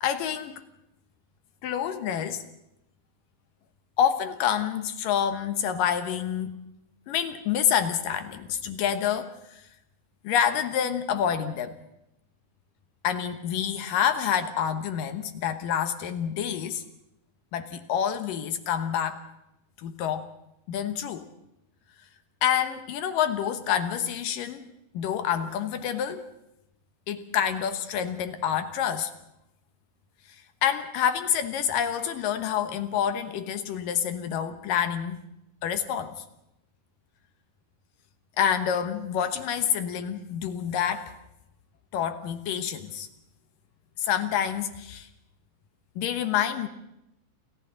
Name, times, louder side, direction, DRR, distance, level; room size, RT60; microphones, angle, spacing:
voice 1, 0.0-0.6 1.6-2.4 4.0-6.5 7.1-9.6 10.2-11.8 13.0-16.8 17.5-19.2 19.8-20.3 20.7-21.3 22.4-24.7 24.9-26.2 27.1-29.1 30.6-35.2 35.6-36.2 38.4-41.1 41.9-43.1 44.0-45.1 46.0-46.7, left 9 dB, 65° left, 9 dB, 2.4 m, -27 dB
29.0 x 28.5 x 3.9 m, 0.84 s
omnidirectional pair, 4.8 m